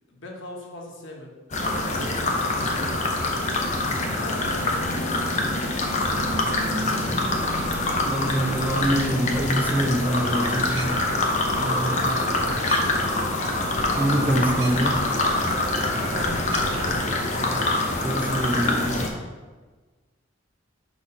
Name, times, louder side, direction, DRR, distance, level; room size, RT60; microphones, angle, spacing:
voice 1, 0.1-3.6 4.2-5.6 11.1-11.7 12.7-13.3, left 1 dB, 75° left, 0 dB, 1.1 m, -42 dB
sound 1, 1.5-19.1, left 2 dB, 35° left, 0.7 m, -25 dB
sound 2, 6.1-12.9, right 1 dB, 35° right, 1.4 m, -39 dB
sound 3, 7.3-17.2, right 2 dB, 90° right, 0.7 m, -39 dB
voice 2, 8.1-10.9 11.6-12.3 13.9-15.0 18.0-18.9, right 1 dB, 10° right, 2 dB, 0.4 m, -25 dB
6.0 x 3.1 x 5.3 m, 1.3 s
head